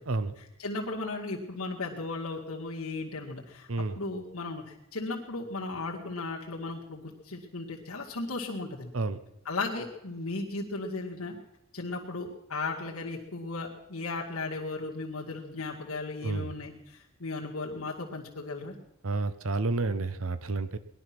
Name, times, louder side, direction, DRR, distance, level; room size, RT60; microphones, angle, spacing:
voice 1, 0.6-3.7 4.0-4.6 4.9-8.9 9.5-11.4 11.7-18.7, left 3 dB, 85° left, -2 dB, 2.1 m, -36 dB
voice 2, 19.0-20.8, right 3 dB, 70° right, 13 dB, 0.9 m, -30 dB
19.5 x 11.5 x 6.1 m, 0.91 s
head